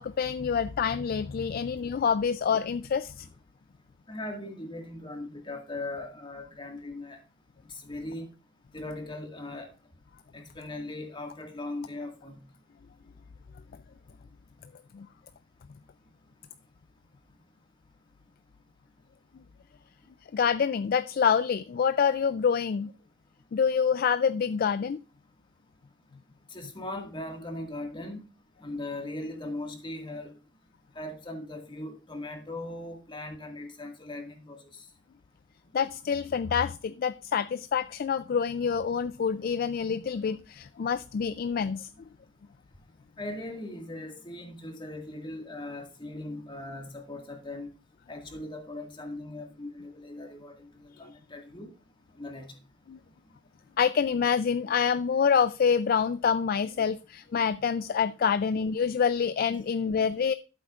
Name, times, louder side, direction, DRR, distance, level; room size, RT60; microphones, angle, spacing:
voice 1, 0.0-3.3 14.9-15.1 20.3-22.9 23.5-25.0 35.7-41.9 52.9-53.0 53.8-60.3, left 6 dB, 50° left, 0.3 m, -26 dB
voice 2, 4.1-7.2 7.7-8.3 8.7-9.7 10.3-12.5 26.5-28.2 28.6-30.4 31.0-34.9 43.2-47.7 48.1-51.7 52.2-52.6, left 2 dB, 25° left, 1.9 m, -39 dB
13.0 x 7.8 x 2.4 m
head